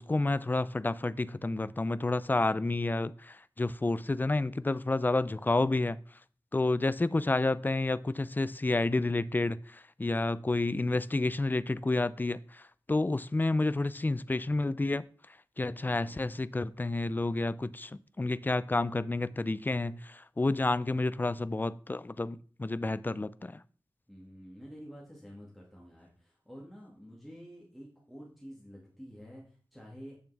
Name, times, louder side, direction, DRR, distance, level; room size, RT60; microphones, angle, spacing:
voice 1, 0.0-6.0 6.5-12.6 12.9-15.0 15.6-23.5, left 2 dB, 20° left, 0.3 m, -30 dB
voice 2, 24.1-30.2, equal, ahead, 1.9 m, -49 dB
8.4 x 6.9 x 3.4 m
wide cardioid pair, 80°, 9 cm